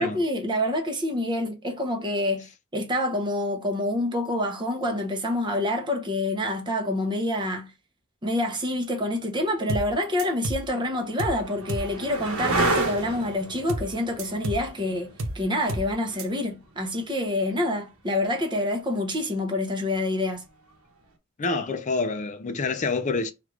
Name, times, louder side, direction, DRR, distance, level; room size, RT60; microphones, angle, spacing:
voice 1, 0.0-7.7 8.2-20.4, left 1 dB, 20° right, 0.7 m, -27 dB
sound 1, 9.3-9.4 10.2-17.9 20.2-20.7, right 2 dB, 90° right, 1.0 m, -32 dB
sound 2, 9.7-9.9 10.2-10.7 11.2-11.4 11.7-11.9 13.7-13.9 14.2-14.7 15.2-15.4 15.7-15.9 16.2-16.3, right 1 dB, 70° right, 0.6 m, -31 dB
voice 2, 21.4-23.3, left 3 dB, 35° left, 0.5 m, -27 dB
3.1 x 2.5 x 3.2 m
head